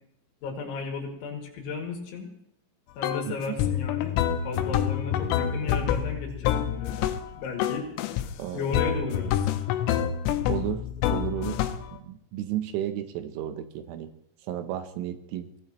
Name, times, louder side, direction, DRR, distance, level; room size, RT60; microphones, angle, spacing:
voice 1, 0.4-2.3 3.0-4.1 4.4-7.0 7.3-7.9 8.5-9.5, left 5 dB, 70° left, 1 dB, 4.6 m, -34 dB
sound 1, 3.0-3.3 3.6-7.3 7.6-8.3 8.7-11.9, left 10 dB, 90° left, 3.5 m, -27 dB
voice 2, 8.4-9.1 10.5-10.8 11.1-11.6 12.0-14.1 14.5-15.5, right 11 dB, 80° right, 9 dB, 3.2 m, -33 dB
23.0 x 17.0 x 3.1 m, 0.72 s
omnidirectional pair, 5.8 m